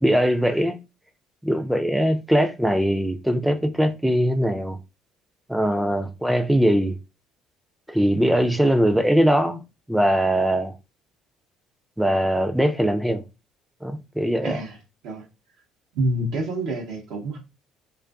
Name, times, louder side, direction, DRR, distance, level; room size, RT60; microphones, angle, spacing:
voice 1, 0.0-0.8 1.4-4.8 5.5-7.0 7.9-9.6 9.9-10.7 12.0-13.2 13.8-14.6, equal, 5° right, 0.4 m, -21 dB
voice 2, 14.4-14.8 15.0-15.2 15.9-17.4, right 1 dB, 75° right, 0.7 m, -27 dB
2.5 x 2.4 x 2.3 m
hypercardioid pair, 65°, 0 cm